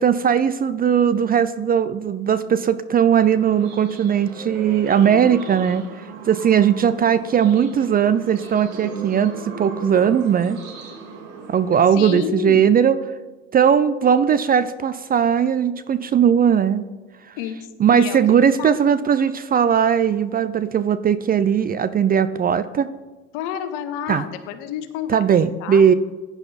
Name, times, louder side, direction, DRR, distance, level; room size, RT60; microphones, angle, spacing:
voice 1, 0.0-5.8 6.3-10.6 11.5-13.0 13.5-16.8 17.8-22.9 24.1-24.3 25.1-25.9, right 8 dB, 25° right, 14 dB, 0.5 m, -18 dB
sound 1, 3.2-11.8, right 4 dB, 60° right, 3.1 m, -36 dB
voice 2, 11.9-12.6 17.4-18.8 23.3-25.2 25.6-26.0, left 10 dB, 60° left, 9 dB, 1.6 m, -30 dB
15.5 x 10.5 x 4.2 m, 1.2 s
hypercardioid pair, 85°, 39 cm